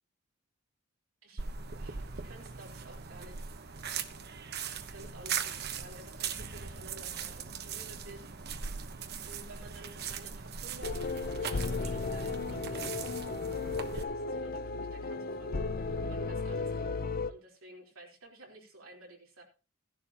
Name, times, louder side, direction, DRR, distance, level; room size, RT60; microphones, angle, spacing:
sound 1, 1.4-14.0, right 6 dB, 45° right, 0.9 m, -40 dB
voice 1, 1.8-3.5 4.7-8.3 9.3-13.0 13.9-15.8 16.1-19.4, right 1 dB, 70° right, -1 dB, 3.9 m, -52 dB
sound 2, 10.8-17.3, left 4 dB, 40° left, 0.6 m, -35 dB
15.5 x 11.0 x 2.9 m, 0.32 s
head